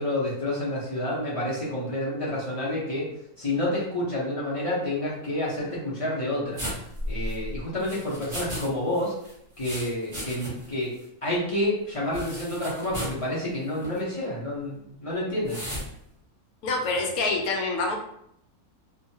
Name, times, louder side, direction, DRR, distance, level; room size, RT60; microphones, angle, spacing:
voice 1, 0.0-3.1 3.4-6.6 7.1-9.1 9.6-10.9 11.2-15.6, left 1 dB, 35° left, -7 dB, 0.5 m, -29 dB
sound 1, 6.6-8.7 8.9-10.7 11.0-11.1 12.1-13.2 13.7-14.0 15.5-15.9, equal, 25° right, 0.9 m, -35 dB
voice 2, 16.6-18.0, left 3 dB, 75° left, 2 dB, 1.0 m, -26 dB
2.9 x 2.2 x 2.7 m, 0.73 s
omnidirectional pair, 1.6 m